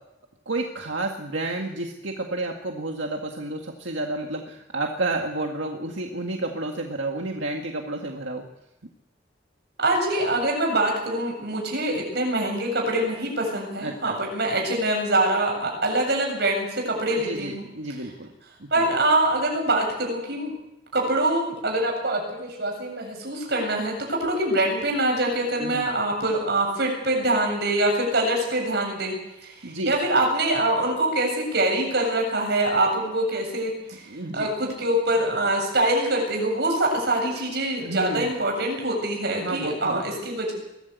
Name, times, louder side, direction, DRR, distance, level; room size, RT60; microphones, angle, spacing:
voice 1, 0.5-8.4 13.8-14.2 17.2-18.3 18.6-18.9 25.6-25.8 29.6-29.9 34.1-34.5 37.8-38.3 39.4-40.0, right 2 dB, 85° right, 1 dB, 2.0 m, -30 dB
voice 2, 9.8-17.6 18.7-20.5 20.9-29.1 29.4-34.0 34.3-40.5, right 1 dB, 60° right, 1 dB, 7.9 m, -24 dB
22.5 x 14.5 x 8.4 m, 0.90 s
head